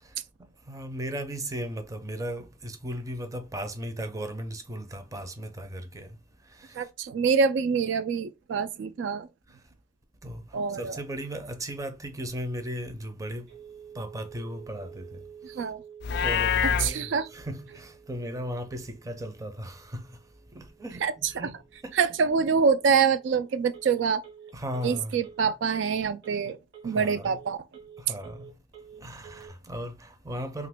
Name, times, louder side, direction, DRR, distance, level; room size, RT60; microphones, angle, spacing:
voice 1, 0.0-6.9 9.5-9.6 10.2-13.5 13.9-15.6 16.2-20.2 20.5-21.6 21.8-22.0 24.5-25.2 26.8-27.4 28.0-28.6 29.0-30.7, equal, 20° right, 0.5 m, -37 dB
voice 2, 6.8-9.3 10.5-11.0 15.4-15.8 16.6-17.3 21.0-21.5 21.9-24.2 24.8-26.6 26.8-27.6, right 6 dB, 90° right, 0.3 m, -25 dB
Telephone, 13.5-29.5, right 7 dB, 65° right, 1.1 m, -50 dB
Livestock farm animals working animals, 16.0-16.9, left 7 dB, 65° left, 0.3 m, -25 dB
2.9 x 2.4 x 3.4 m
head